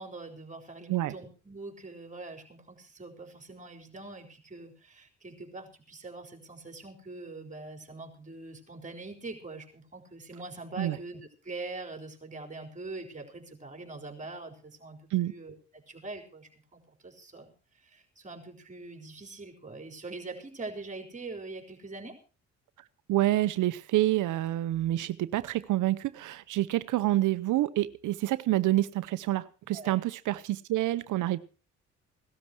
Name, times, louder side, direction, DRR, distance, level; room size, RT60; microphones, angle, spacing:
voice 1, 0.0-22.2 29.7-30.0, right 3 dB, 25° right, 4.5 m, -43 dB
voice 2, 23.1-31.4, right 15 dB, 80° right, 0.9 m, -27 dB
17.5 x 12.5 x 4.6 m
cardioid pair, 90°, 30 cm